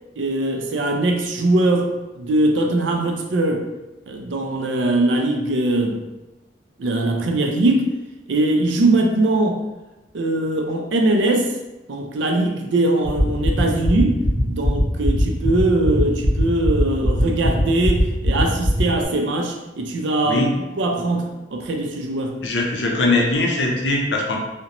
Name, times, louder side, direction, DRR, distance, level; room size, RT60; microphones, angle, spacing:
voice 1, 0.2-3.6 4.1-6.0 6.8-7.9 8.3-9.6 10.1-11.5 11.9-20.5 20.8-22.4, right 2 dB, 90° right, 2 dB, 0.4 m, -21 dB
sound 1, 13.0-19.0, left 1 dB, 25° right, 0.9 m, -22 dB
voice 2, 22.4-24.4, left 2 dB, 70° left, -1 dB, 0.5 m, -21 dB
2.5 x 2.1 x 2.8 m, 1.0 s
head